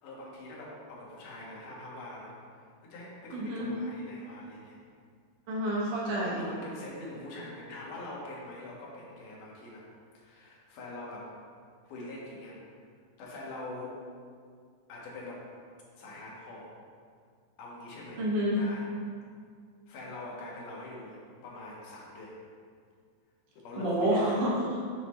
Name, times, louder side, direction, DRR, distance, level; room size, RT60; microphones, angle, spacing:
voice 1, 0.0-4.8 6.2-9.8 10.1-11.3 11.8-12.6 13.2-14.0 14.9-15.5 16.0-16.8 17.6-18.9 19.9-22.4 23.6-24.4, left 2 dB, 85° left, -4 dB, 2.7 m, -44 dB
voice 2, 3.3-3.7 5.5-6.4 18.2-18.6 23.8-24.8, equal, 80° right, -5 dB, 2.7 m, -28 dB
8.1 x 4.1 x 3.1 m, 2.1 s
omnidirectional pair, 3.6 m